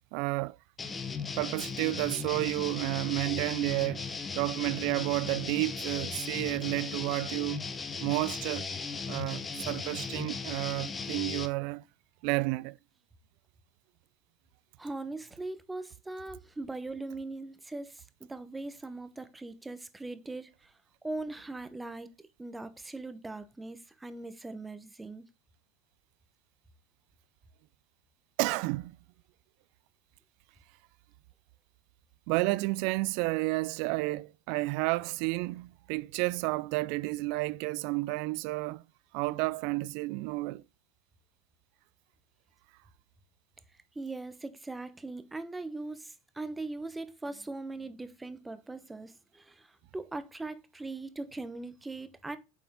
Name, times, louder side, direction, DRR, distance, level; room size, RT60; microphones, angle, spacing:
voice 1, 0.1-0.6 1.4-4.0 4.3-7.6 8.0-8.7 9.1-11.8 12.2-12.8 28.4-29.0 32.3-38.8 39.1-40.6, right 22 dB, 65° right, 0.3 m, -31 dB
sound 1, 0.8-11.5, left 4 dB, 20° left, 1.0 m, -37 dB
voice 2, 14.8-22.1 22.4-25.2 43.9-52.4, right 2 dB, 10° right, 0.9 m, -40 dB
7.1 x 4.2 x 3.6 m
supercardioid pair, 105°, 0 cm